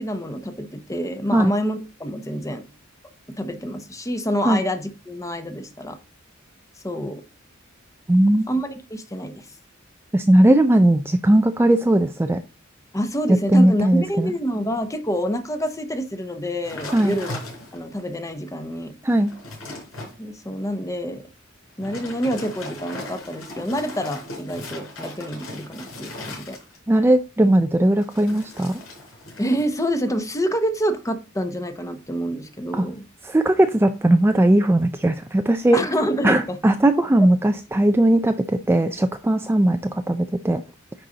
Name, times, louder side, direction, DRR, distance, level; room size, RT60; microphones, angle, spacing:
voice 1, 0.0-2.7 3.3-6.0 6.8-7.2 8.5-9.5 12.9-17.4 17.7-18.9 20.2-21.2 21.8-26.6 29.4-33.0 35.7-36.6, equal, 15° left, 8 dB, 1.0 m, -27 dB
voice 2, 8.1-8.5 10.1-12.4 13.5-14.3 16.9-17.2 19.0-19.3 26.9-28.8 32.7-32.8 33.2-35.8 36.2-40.6, right 1 dB, 10° right, 7 dB, 0.4 m, -18 dB
sound 1, 16.6-18.0 18.5-18.6 19.0-20.2 21.7-27.0 28.0-29.7 30.0-30.4, left 2 dB, 80° left, 4.4 m, -38 dB
10.0 x 4.3 x 3.9 m, 0.31 s
head